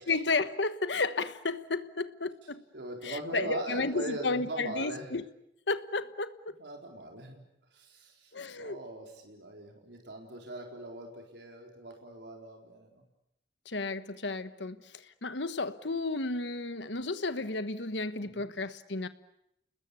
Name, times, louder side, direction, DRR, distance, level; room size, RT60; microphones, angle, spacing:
voice 1, 0.0-2.6 3.0-5.2 5.7-6.5 8.3-8.8 13.6-19.1, left 3 dB, 90° left, 1.3 m, -33 dB
voice 2, 2.7-5.1 6.6-7.4 7.7-13.0 18.2-18.5, right 1 dB, 80° right, 4.3 m, -41 dB
30.0 x 20.5 x 8.4 m
head